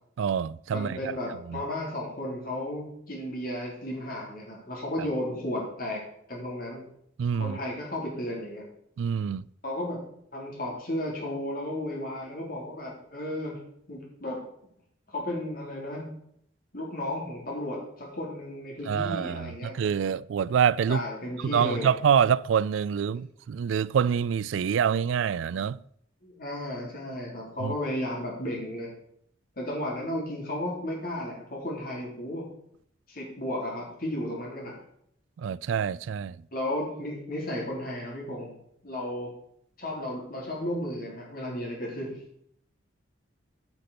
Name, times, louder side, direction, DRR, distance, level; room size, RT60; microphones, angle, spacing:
voice 1, 0.2-1.1 1.5-1.6 5.0-5.1 7.2-7.6 9.0-9.4 18.9-21.0 21.4-25.8 27.6-27.7 35.4-36.4, right 7 dB, 85° right, 0.3 m, -26 dB
voice 2, 0.7-6.0 6.3-6.8 7.4-8.6 9.6-10.0 10.3-13.6 13.9-14.4 15.1-16.1 16.7-19.7 20.9-21.9 26.2-28.9 29.6-32.4 33.1-34.7 36.5-38.6 38.8-39.3 39.8-42.2, left 1 dB, 50° left, 3.7 m, -34 dB
9.8 x 5.9 x 6.6 m
head